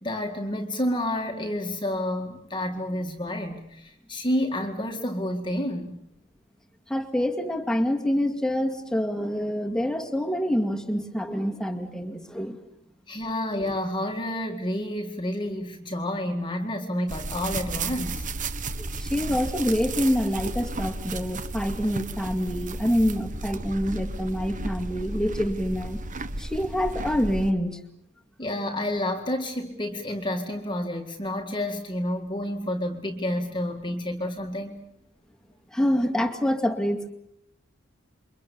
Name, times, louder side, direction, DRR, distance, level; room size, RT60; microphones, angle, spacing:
voice 1, 0.0-6.0 13.1-18.3 28.4-34.8, left 1 dB, 25° left, 3 dB, 2.0 m, -29 dB
voice 2, 6.9-12.6 18.8-26.0 26.4-27.8 35.7-37.1, equal, 5° left, 3 dB, 2.2 m, -26 dB
sound 1, 17.1-27.5, right 2 dB, 40° right, 1.3 m, -33 dB
28.5 x 24.0 x 7.1 m, 0.76 s
head